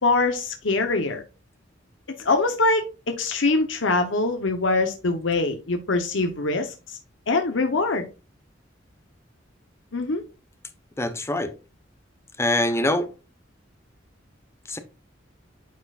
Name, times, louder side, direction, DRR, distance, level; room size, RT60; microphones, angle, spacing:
voice 1, 0.0-1.2 2.2-7.0 7.3-8.1 9.9-10.2, left 3 dB, 75° left, 0.9 m, -23 dB
voice 2, 11.0-11.5 12.4-13.1 14.7-14.8, left 1 dB, 15° left, 0.6 m, -24 dB
9.3 x 4.4 x 2.4 m
head